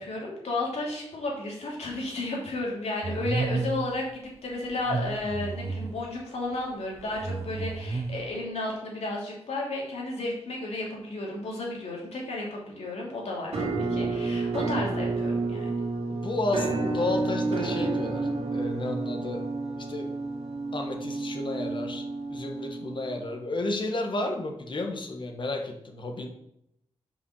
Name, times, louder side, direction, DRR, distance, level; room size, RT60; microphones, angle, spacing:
voice 1, 0.0-15.7, left 2 dB, 75° left, -2 dB, 2.7 m, -33 dB
sound 1, 3.0-4.0 4.7-6.1 7.0-8.3, right 3 dB, 25° right, 0.5 m, -32 dB
Musical instrument, 13.5-23.3, right 3 dB, 75° right, 2.2 m, -30 dB
voice 2, 16.1-19.5 19.8-20.1 20.7-26.3, left 2 dB, 50° left, 4 dB, 1.3 m, -32 dB
5.8 x 5.3 x 6.4 m, 0.79 s
cardioid pair, 80°, 11 cm